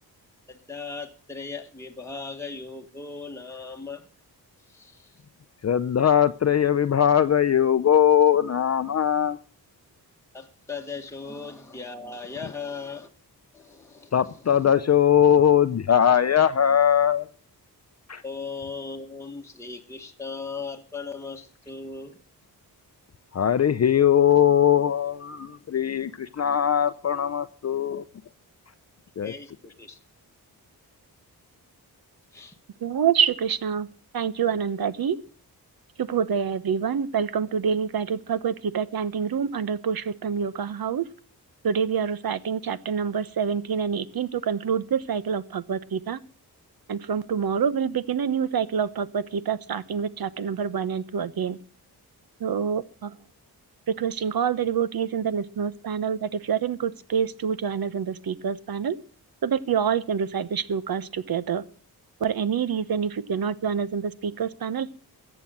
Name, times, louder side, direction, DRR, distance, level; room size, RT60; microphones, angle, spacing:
voice 1, 0.5-4.1 4.7-5.1 10.3-13.1 13.5-14.6 18.2-22.2 29.2-30.0 32.3-32.6, left 4 dB, 5° left, 1.4 m, -38 dB
voice 2, 5.6-9.4 14.1-17.3 18.1-18.2 23.3-28.0 29.2-29.3, left 9 dB, 40° left, 0.6 m, -20 dB
voice 3, 32.8-33.9 34.1-35.2 36.0-41.0 41.6-46.2 46.9-51.6 52.4-53.1 53.9-59.0 59.4-61.6 62.2-64.9, right 7 dB, 65° right, 1.1 m, -26 dB
14.5 x 8.4 x 7.5 m
wide cardioid pair, 100°, 39 cm